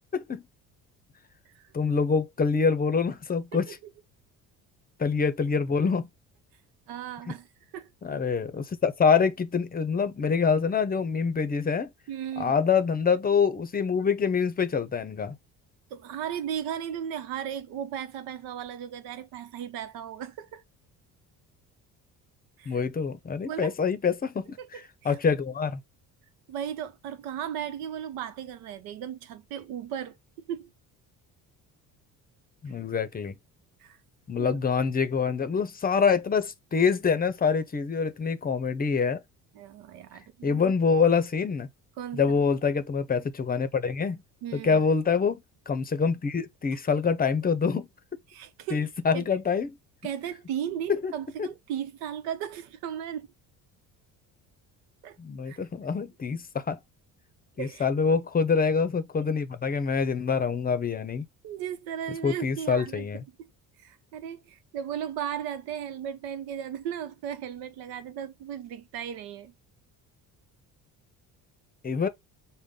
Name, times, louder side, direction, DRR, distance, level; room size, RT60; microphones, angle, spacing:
voice 1, 0.1-0.4 1.7-3.8 5.0-6.1 8.0-11.9 12.4-15.4 22.7-25.8 32.6-33.4 34.3-39.2 40.4-41.7 42.1-44.2 44.5-47.9 48.7-49.8 50.9-51.1 51.4-51.5 55.2-56.8 57.6-61.3 62.2-63.2 71.8-72.1, left 5 dB, 25° left, 0.6 m, -26 dB
voice 2, 6.9-7.5 7.7-7.9 12.1-12.6 15.9-20.6 22.6-22.8 23.4-23.7 24.6-25.2 26.5-30.2 30.5-30.7 33.8-34.0 34.4-34.6 39.5-40.7 42.0-42.4 44.4-44.8 48.3-49.2 50.0-53.3 55.0-55.2 55.5-55.6 57.6-57.9 61.4-63.1 63.4-63.5 63.8-69.5, right 9 dB, 90° right, 0.8 m, -36 dB
5.2 x 2.2 x 3.6 m
cardioid pair, 100°, 35 cm